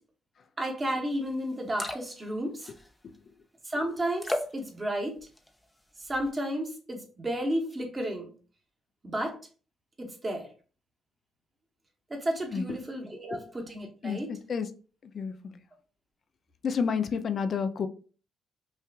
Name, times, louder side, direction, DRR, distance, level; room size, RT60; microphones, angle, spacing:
voice 1, 0.6-2.7 3.6-5.1 6.0-8.3 9.0-9.4 10.0-10.5 12.1-14.3, right 1 dB, 25° right, 1.1 m, -32 dB
sound 1, 1.2-1.3 1.5-2.3 2.6-3.2 4.2-4.6 5.2-5.6 6.0-6.3, left 1 dB, 10° left, 0.6 m, -34 dB
voice 2, 14.0-14.7 15.1-15.6 16.6-17.9, left 6 dB, 50° left, 0.4 m, -30 dB
5.5 x 2.4 x 2.4 m
cardioid pair, 90°, 0 cm